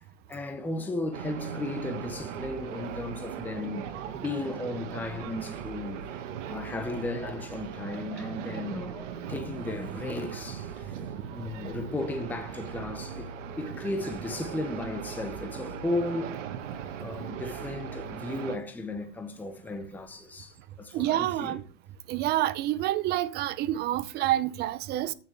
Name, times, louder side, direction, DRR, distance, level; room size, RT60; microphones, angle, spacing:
voice 1, 0.3-6.1 6.5-10.9 11.3-16.4 17.0-21.6, left 2 dB, 5° left, 0.8 m, -35 dB
sound 1, 1.1-18.6, right 7 dB, 80° right, 1.5 m, -39 dB
voice 2, 20.9-21.6 22.1-25.1, right 14 dB, 30° right, 0.5 m, -28 dB
13.5 x 6.4 x 3.4 m
supercardioid pair, 140°, 36 cm